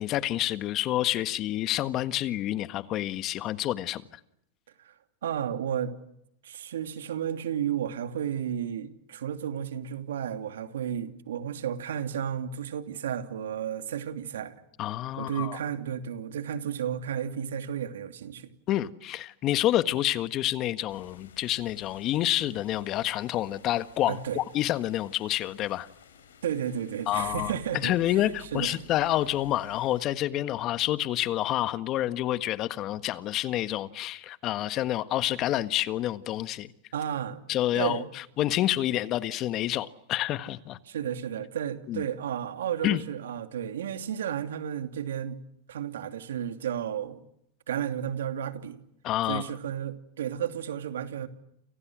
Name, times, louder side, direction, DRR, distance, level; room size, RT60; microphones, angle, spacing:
voice 1, 0.0-4.0 14.8-15.6 18.7-25.9 27.1-36.7 37.5-40.8 41.9-42.0 42.8-43.0 49.0-49.5, left 13 dB, 40° left, 1.6 m, -28 dB
voice 2, 5.2-5.9 6.4-14.6 15.2-18.5 24.1-24.4 26.4-27.9 28.5-28.8 36.9-37.4 37.7-38.1 40.9-45.4 45.7-47.2 47.7-48.8 49.3-51.3, right 9 dB, 80° right, 2.8 m, -32 dB
sound 1, 20.9-30.0, left 7 dB, 85° left, 7.1 m, -53 dB
29.5 x 29.0 x 6.3 m
hypercardioid pair, 110°, 0 cm